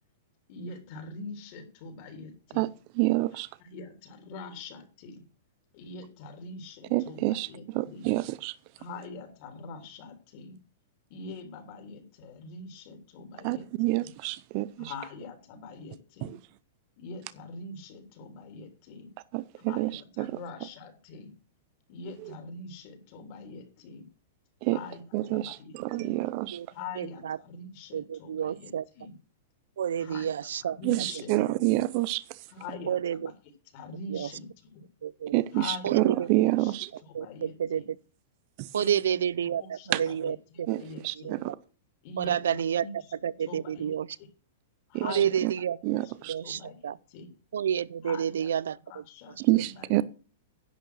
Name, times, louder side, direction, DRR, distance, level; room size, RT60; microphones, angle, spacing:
voice 1, 0.5-2.7 3.3-5.2 5.7-8.1 8.8-10.6 11.1-14.1 14.8-16.4 17.0-19.1 19.5-21.3 21.9-24.1 24.6-26.2 26.7-29.1 30.0-31.7 32.5-33.3 33.7-34.8 35.5-36.3 36.6-37.9 38.7-39.2 39.6-41.4 42.0-43.1 43.4-44.3 44.9-45.4 46.0-47.3 48.0-48.5 48.9-50.0, left 3 dB, 45° left, 3.3 m, -44 dB
voice 2, 3.0-3.5 6.9-7.5 7.7-8.5 13.4-14.9 19.3-19.9 20.2-20.3 24.6-24.8 25.1-26.6 30.8-32.2 35.3-36.9 38.6-38.7 39.9-40.0 40.7-41.5 44.9-45.0 45.8-46.3 49.4-50.0, right 18 dB, 45° right, 0.5 m, -27 dB
voice 3, 27.0-27.4 27.9-28.8 29.8-30.8 32.9-33.3 34.1-34.3 35.0-35.4 35.8-36.3 37.1-37.8 38.7-40.7 41.2-41.5 42.2-42.9 43.2-44.1 45.0-45.8 46.3-47.0 47.5-48.8 49.5-49.6, right 9 dB, 85° right, 0.5 m, -29 dB
10.5 x 6.5 x 6.3 m
hypercardioid pair, 150°, 0 cm